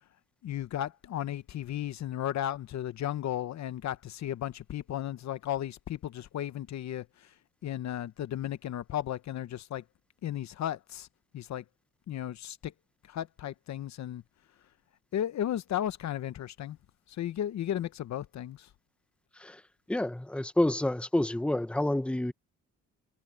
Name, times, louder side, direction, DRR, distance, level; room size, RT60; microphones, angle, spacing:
voice 1, 0.4-7.3 7.6-9.8 10.2-11.1 11.3-11.6 12.1-12.7 13.1-14.2 15.1-16.8 17.1-18.7, left 11 dB, 65° left, 1.0 m, -34 dB
voice 2, 19.9-22.3, left 1 dB, 5° left, 1.1 m, -28 dB
cardioid pair, 90°, 30 cm